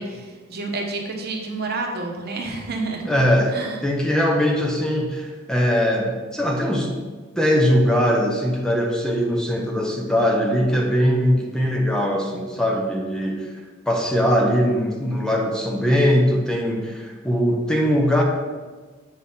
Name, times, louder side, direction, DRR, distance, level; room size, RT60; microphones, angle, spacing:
voice 1, 0.0-3.0 3.5-3.8, right 3 dB, 55° right, 2 dB, 1.1 m, -29 dB
voice 2, 3.1-3.6 3.8-6.9 7.4-13.5 13.9-18.2, equal, 5° left, 0 dB, 0.7 m, -21 dB
7.8 x 4.1 x 5.5 m, 1.4 s
head